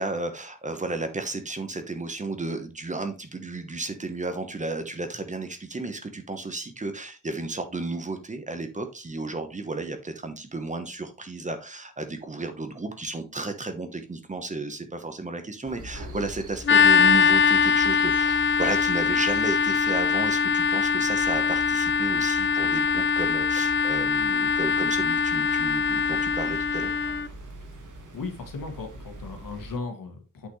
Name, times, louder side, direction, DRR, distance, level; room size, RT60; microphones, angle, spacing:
voice 1, 0.0-26.9, right 3 dB, 20° right, 7 dB, 1.0 m, -33 dB
sound 1, 15.7-29.8, right 1 dB, 65° right, 2.0 m, -44 dB
sound 2, 16.6-27.3, left 6 dB, 35° left, 0.5 m, -22 dB
voice 2, 27.7-30.5, left 4 dB, 80° left, 4 dB, 2.1 m, -37 dB
8.5 x 5.9 x 3.2 m, 0.30 s
wide cardioid pair, 175°, 33 cm